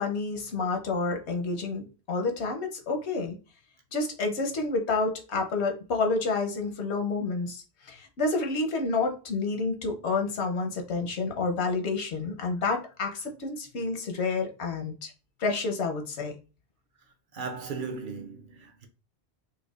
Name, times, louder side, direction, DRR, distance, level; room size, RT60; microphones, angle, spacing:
voice 1, 0.0-3.4 3.9-15.1 15.4-16.3, left 3 dB, 85° left, 1.0 m, -29 dB
voice 2, 17.3-18.9, right 5 dB, 60° right, 0.6 m, -37 dB
4.6 x 2.2 x 2.3 m
omnidirectional pair, 1.1 m